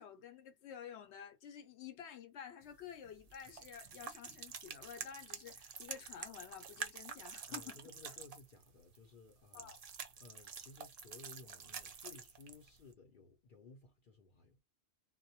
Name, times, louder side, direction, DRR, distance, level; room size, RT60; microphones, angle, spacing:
voice 1, 0.0-7.8 9.5-9.8, left 8 dB, 80° left, 0.9 m, -51 dB
sound 1, 2.6-12.9, right 6 dB, 55° right, 0.4 m, -48 dB
voice 2, 7.5-9.7 10.2-14.6, left 4 dB, 60° left, 0.6 m, -58 dB
2.2 x 2.1 x 2.7 m
omnidirectional pair, 1.1 m